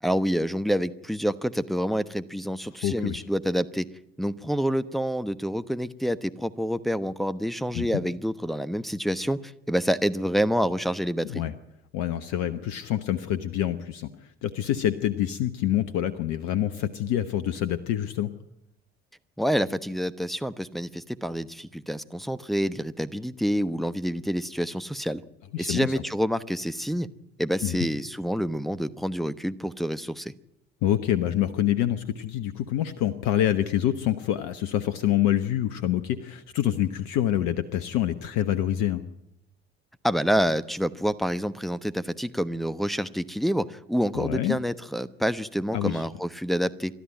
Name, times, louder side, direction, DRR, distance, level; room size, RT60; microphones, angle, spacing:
voice 1, 0.0-3.9 4.2-11.4 19.4-25.2 25.6-27.1 27.4-30.3 40.0-47.0, equal, ahead, 11 dB, 1.1 m, -27 dB
voice 2, 2.8-3.2 7.7-7.9 11.2-11.5 11.9-18.3 25.5-25.9 27.6-27.9 30.8-39.0 44.1-44.6 45.7-46.0, left 11 dB, 60° left, 13 dB, 1.1 m, -26 dB
29.5 x 13.0 x 9.0 m, 0.79 s
figure-of-eight pair, 55°, 31 cm